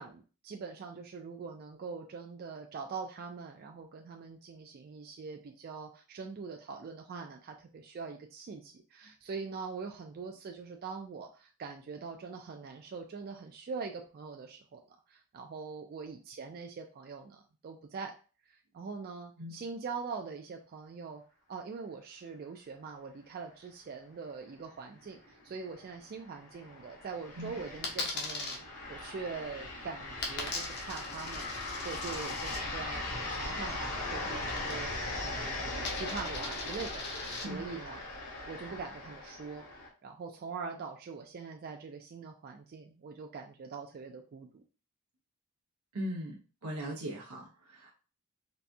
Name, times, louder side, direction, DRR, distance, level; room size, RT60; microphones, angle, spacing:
voice 1, 0.0-18.1 18.5-21.2 21.5-37.0 37.4-38.0 38.5-39.7 40.0-44.6, right 5 dB, 45° right, 3 dB, 0.3 m, -43 dB
sound 1, 25.0-39.9, left 2 dB, 85° left, 1.1 m, -39 dB
Coin (dropping), 27.8-28.6 30.2-32.6 34.5-35.1 35.4-37.4, left 3 dB, 45° left, 0.8 m, -40 dB
voice 2, 45.9-46.4 46.6-47.9, equal, 75° right, -2 dB, 0.8 m, -38 dB
4.0 x 2.3 x 2.5 m, 0.35 s
head